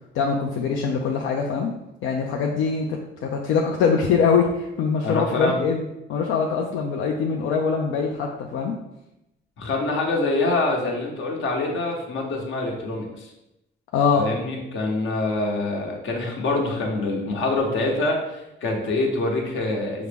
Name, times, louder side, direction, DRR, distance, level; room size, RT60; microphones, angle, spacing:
voice 1, 0.1-1.7 2.0-5.8 6.1-8.8 13.9-14.3, left 5 dB, 90° left, 1 dB, 0.4 m, -23 dB
voice 2, 5.0-5.6 9.6-13.3 14.1-20.1, left 2 dB, 75° left, 0 dB, 1.0 m, -25 dB
5.7 x 2.0 x 3.4 m, 0.91 s
cardioid pair, 90°, 20 cm